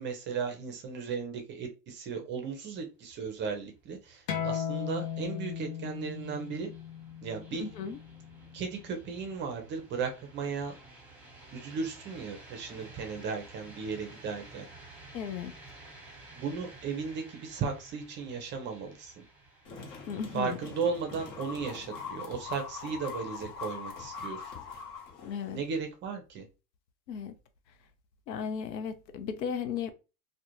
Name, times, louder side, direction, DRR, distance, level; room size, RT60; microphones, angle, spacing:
voice 1, 0.0-6.7 7.2-7.7 8.5-10.7 11.5-14.6 16.3-19.1 20.3-24.4 25.5-26.4, right 5 dB, 25° right, 0.5 m, -36 dB
sound 1, 3.0-21.8, right 2 dB, 5° right, 0.9 m, -53 dB
sound 2, 4.3-9.5, left 8 dB, 35° left, 0.6 m, -37 dB
voice 2, 7.6-8.0 15.1-15.5 20.1-20.6 25.2-25.6 27.1-27.3 28.3-29.9, left 7 dB, 90° left, 0.6 m, -35 dB
sound 3, 19.6-25.7, left 5 dB, 55° left, 1.1 m, -42 dB
2.3 x 2.2 x 2.9 m
hypercardioid pair, 110°, 49 cm